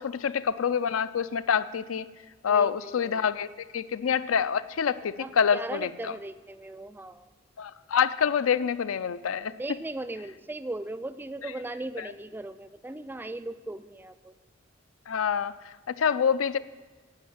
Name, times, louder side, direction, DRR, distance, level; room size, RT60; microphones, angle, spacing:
voice 1, 0.0-2.1 2.4-3.5 3.7-6.1 7.6-9.5 12.0-12.1 15.1-16.6, left 7 dB, 90° left, 16 dB, 0.4 m, -26 dB
voice 2, 2.5-3.2 5.2-7.3 9.5-14.3, right 2 dB, 10° right, 14 dB, 0.3 m, -38 dB
11.5 x 5.7 x 8.7 m, 1.4 s
head